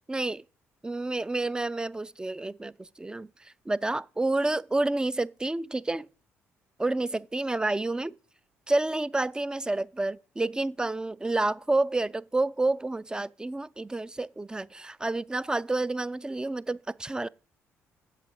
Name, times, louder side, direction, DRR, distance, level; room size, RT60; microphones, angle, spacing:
voice 1, 0.8-6.1 6.8-8.1 8.7-17.3, right 2 dB, 10° right, 0.3 m, -29 dB
7.4 x 6.7 x 5.1 m
figure-of-eight pair, 45°, 7 cm